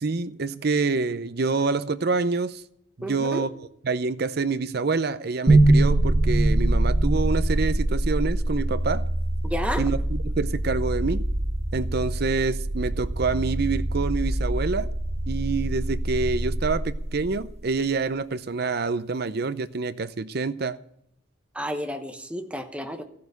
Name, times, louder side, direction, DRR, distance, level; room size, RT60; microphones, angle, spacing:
voice 1, 0.0-2.6 3.0-3.5 3.8-9.1 9.8-11.2 11.7-14.9 15.3-20.8, right 4 dB, 55° right, 0.6 m, -27 dB
voice 2, 3.0-3.5 9.5-9.8 21.5-23.0, equal, 5° right, 1.0 m, -31 dB
sound 1, 5.5-17.5, right 1 dB, 35° right, 1.3 m, -24 dB
15.0 x 6.7 x 8.1 m
head